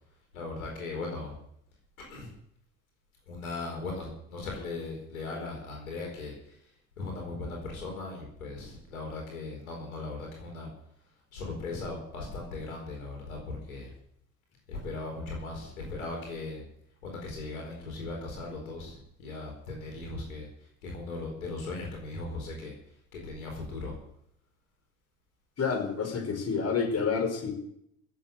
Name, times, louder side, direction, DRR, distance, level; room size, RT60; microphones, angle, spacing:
voice 1, 0.3-1.3 2.1-2.3 3.3-6.7 7.0-10.7 11.3-13.9 14.7-16.6 17.0-22.7 23.1-24.0, left 3 dB, 80° left, 1 dB, 4.6 m, -38 dB
voice 2, 25.6-27.5, left 5 dB, 35° left, 4 dB, 5.1 m, -29 dB
15.5 x 8.5 x 8.0 m, 0.70 s
figure-of-eight pair, 65°, 42 cm